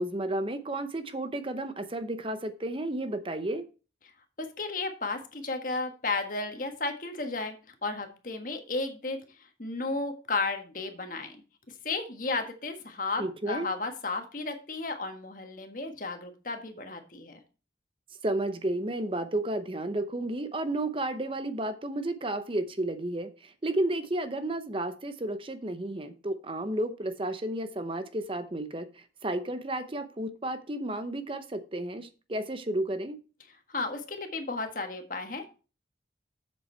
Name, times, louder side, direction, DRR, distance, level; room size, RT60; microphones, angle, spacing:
voice 1, 0.0-3.7 13.2-13.7 18.2-33.2, right 1 dB, 30° right, 0.7 m, -32 dB
voice 2, 4.4-7.5 7.8-9.2 9.6-11.4 11.8-17.4 33.7-35.5, left 3 dB, 50° left, 1.5 m, -33 dB
7.6 x 7.1 x 4.4 m
head